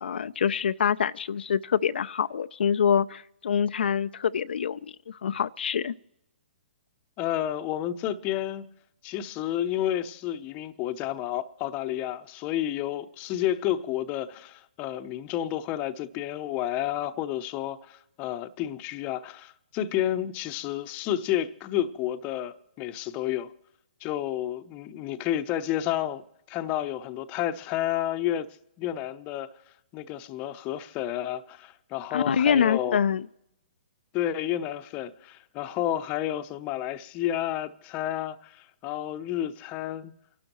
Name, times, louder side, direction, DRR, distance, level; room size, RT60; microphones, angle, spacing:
voice 1, 0.0-5.9 32.1-33.2, left 7 dB, 80° left, 0.4 m, -25 dB
voice 2, 7.2-8.7 9.0-23.5 24.0-26.2 26.5-28.5 28.8-29.5 29.9-33.0 34.1-40.1, left 12 dB, 25° left, 0.7 m, -30 dB
29.5 x 12.0 x 3.0 m
hypercardioid pair, 145°, 6 cm